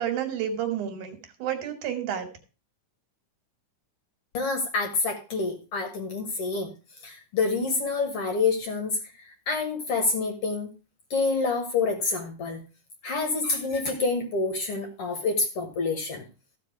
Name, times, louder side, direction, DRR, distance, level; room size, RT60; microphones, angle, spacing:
voice 1, 0.0-2.3, right 9 dB, 70° right, 7 dB, 2.9 m, -30 dB
voice 2, 4.3-6.7 7.0-8.9 9.5-10.7 11.1-12.6 13.0-16.2, left 4 dB, 55° left, 4 dB, 1.8 m, -27 dB
14.0 x 5.1 x 4.6 m, 0.32 s
omnidirectional pair, 3.7 m